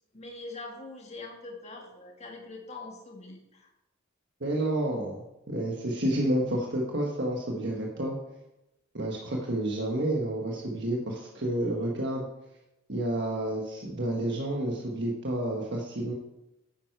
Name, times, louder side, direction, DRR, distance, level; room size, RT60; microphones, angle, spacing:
voice 1, 0.1-3.7, left 3 dB, 35° left, 1 dB, 1.9 m, -43 dB
voice 2, 4.4-5.2 5.5-8.1 8.9-12.2 12.9-16.1, right 1 dB, 60° right, -1 dB, 1.4 m, -30 dB
9.4 x 9.3 x 4.7 m, 0.92 s
head